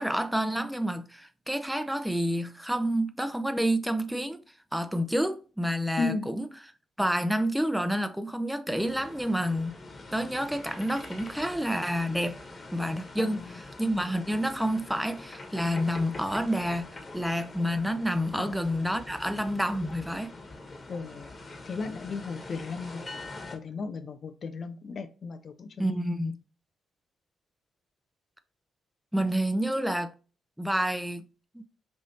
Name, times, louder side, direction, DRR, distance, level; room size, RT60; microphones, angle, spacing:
voice 1, 0.0-4.4 4.7-6.5 7.0-9.8 10.1-12.4 12.7-20.3 25.8-26.4 29.1-30.1 30.6-31.2 31.5-31.6, equal, 5° right, 0.6 m, -29 dB
voice 2, 6.0-6.3 13.2-13.6 18.3-18.5 20.9-23.0 23.5-26.0, left 4 dB, 50° left, 0.5 m, -35 dB
sound 1, 8.7-23.6, left 2 dB, 35° left, 1.3 m, -44 dB
5.4 x 3.0 x 2.7 m
figure-of-eight pair, 40°, 0 cm